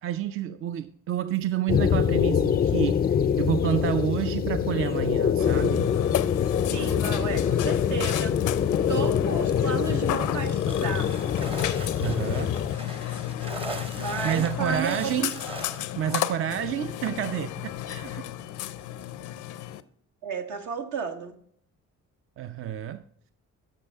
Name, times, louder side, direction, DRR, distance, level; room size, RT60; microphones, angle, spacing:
voice 1, 0.0-5.9 12.0-12.5 14.2-15.3 16.0-18.2 22.4-23.0, right 11 dB, 45° right, 0.4 m, -29 dB
sound 1, 1.7-12.8, left 8 dB, 30° left, 0.4 m, -25 dB
Burping eructation, 5.4-19.8, left 12 dB, 80° left, 0.6 m, -32 dB
voice 2, 6.7-8.4 8.9-11.1 13.9-15.3 20.2-21.4, right 6 dB, 75° right, 1.3 m, -33 dB
sound 2, 10.2-15.9, right 3 dB, 20° right, 0.7 m, -40 dB
13.5 x 5.5 x 3.4 m
cardioid pair, 90°, 30 cm